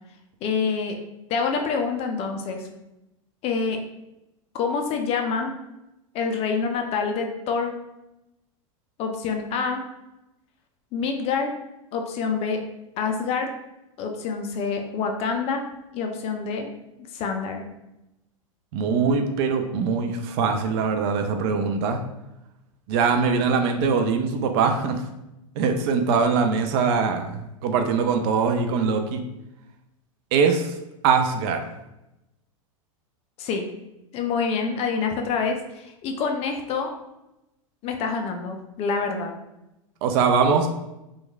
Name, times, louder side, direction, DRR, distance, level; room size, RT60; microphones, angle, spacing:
voice 1, 0.4-1.0 1.3-2.7 3.4-3.8 4.5-5.5 6.1-7.7 9.0-9.8 10.9-11.5 11.9-12.6 13.0-13.5 14.0-15.6 15.9-16.7 17.1-17.7 33.4-33.7 34.1-36.9 37.8-39.3, left 5 dB, 35° left, 4 dB, 0.4 m, -26 dB
voice 2, 18.7-22.0 22.9-25.0 25.6-29.2 30.3-30.7 31.0-31.6 40.0-40.7, right 5 dB, 50° right, 6 dB, 0.4 m, -22 dB
2.9 x 2.3 x 2.2 m, 0.92 s
hypercardioid pair, 95°, 18 cm